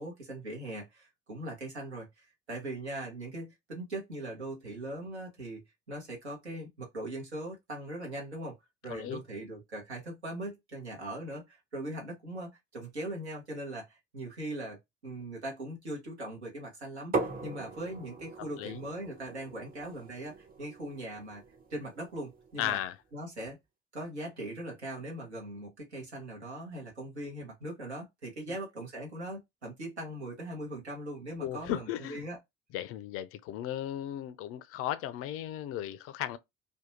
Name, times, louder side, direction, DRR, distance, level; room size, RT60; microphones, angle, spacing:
voice 1, 0.0-5.6 5.9-8.5 8.8-21.4 21.7-22.8 23.1-23.6 23.9-32.4, right 1 dB, 85° right, 0.9 m, -40 dB
voice 2, 8.9-9.2 18.6-18.8 22.6-23.0 31.4-32.2 32.7-36.4, left 12 dB, 45° left, 0.4 m, -35 dB
sound 1, 17.1-22.8, right 3 dB, 30° right, 0.7 m, -40 dB
2.6 x 2.2 x 2.7 m
figure-of-eight pair, 55°, 32 cm